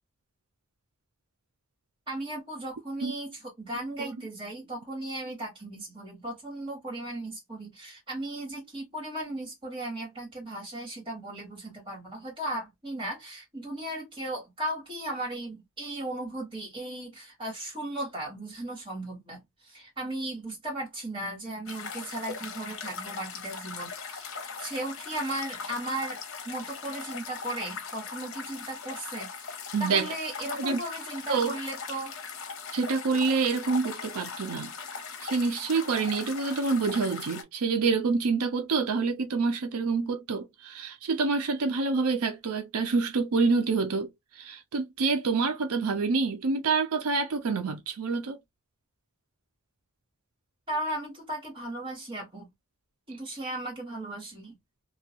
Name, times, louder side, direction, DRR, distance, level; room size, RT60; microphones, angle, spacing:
voice 1, 2.1-26.2 26.4-32.1 50.7-52.5 53.1-54.5, right 1 dB, 25° right, 1.6 m, -36 dB
sound 1, 21.7-37.4, left 5 dB, 65° left, 0.7 m, -40 dB
voice 2, 29.7-30.1 30.6-30.8 31.3-31.5 32.7-34.7 35.2-48.4, right 4 dB, 85° right, 0.5 m, -27 dB
2.9 x 2.2 x 2.8 m
head